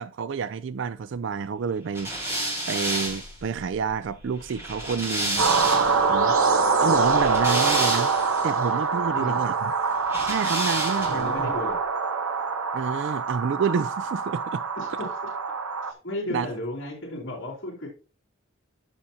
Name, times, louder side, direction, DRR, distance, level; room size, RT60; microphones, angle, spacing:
voice 1, 0.0-2.1 2.7-5.5 6.1-6.4 6.8-8.1 8.4-9.5 10.2-11.5 12.7-14.6 16.3-16.5, right 6 dB, 60° right, 0.3 m, -29 dB
sound 1, 1.9-6.0 7.0-8.4 10.1-11.3, right 1 dB, 10° right, 3.7 m, -30 dB
sound 2, 5.4-15.9, right 4 dB, 90° right, 0.9 m, -24 dB
voice 2, 9.1-9.5 10.9-11.8 14.8-14.9 15.9-17.9, left 1 dB, 60° left, 3.1 m, -34 dB
13.5 x 5.7 x 2.8 m
head